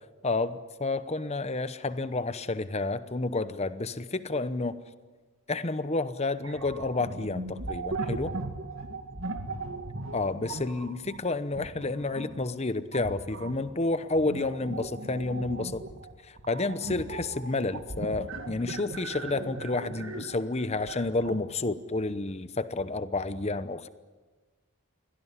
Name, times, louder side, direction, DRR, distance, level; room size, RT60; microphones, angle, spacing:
voice 1, 0.2-4.8 5.5-8.3 10.1-15.8 16.5-23.9, left 2 dB, 30° left, 13 dB, 0.8 m, -30 dB
sound 1, 6.4-12.4 12.9-21.4, right 2 dB, 60° right, 2.3 m, -38 dB
23.5 x 17.5 x 9.9 m, 1.4 s
head